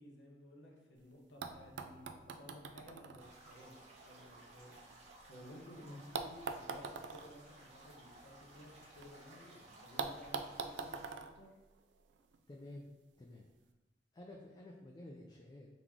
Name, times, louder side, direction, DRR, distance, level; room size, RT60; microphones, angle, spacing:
voice 1, 0.0-11.5, equal, 85° left, -1 dB, 1.0 m, -56 dB
sound 1, 1.0-1.1 1.4-5.5 6.1-9.1 9.4-9.5 10.0-12.4 13.4-13.5, right 5 dB, 80° right, 0.4 m, -45 dB
sound 2, 3.2-11.1, right 2 dB, 40° right, 0.9 m, -59 dB
voice 2, 12.5-12.9 13.2-13.5 14.1-15.7, left 1 dB, 25° left, -1 dB, 0.4 m, -51 dB
3.9 x 3.0 x 3.6 m, 1.1 s
head